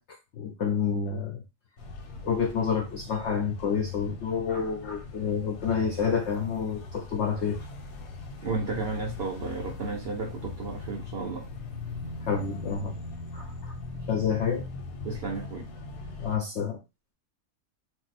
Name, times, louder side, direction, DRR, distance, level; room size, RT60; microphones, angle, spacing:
voice 1, 0.0-1.4 2.2-7.7 12.3-13.0 13.3-13.7 14.1-14.6 16.2-16.8, left 6 dB, 65° left, 0.7 m, -29 dB
sound 1, 1.8-16.4, left 3 dB, 90° left, 1.2 m, -40 dB
voice 2, 8.4-11.5 15.0-15.7, right 4 dB, 80° right, 0.5 m, -33 dB
2.6 x 2.0 x 4.0 m
omnidirectional pair, 1.7 m